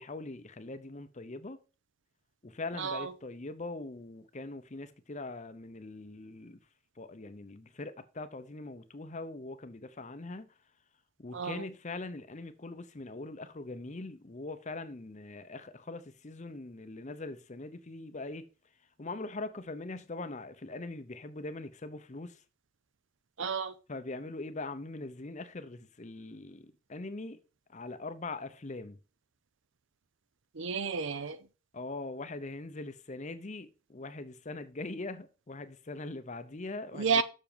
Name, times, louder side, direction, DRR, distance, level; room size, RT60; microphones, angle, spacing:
voice 1, 0.0-1.6 2.4-6.6 7.0-10.5 11.2-18.5 19.0-22.4 23.4-23.5 23.9-27.4 27.7-29.0 31.7-37.2, left 2 dB, 30° left, 0.7 m, -42 dB
voice 2, 2.8-3.1 11.3-11.6 23.4-23.7 30.6-31.4 37.0-37.2, right 5 dB, 55° right, 0.6 m, -31 dB
7.1 x 6.5 x 5.2 m
head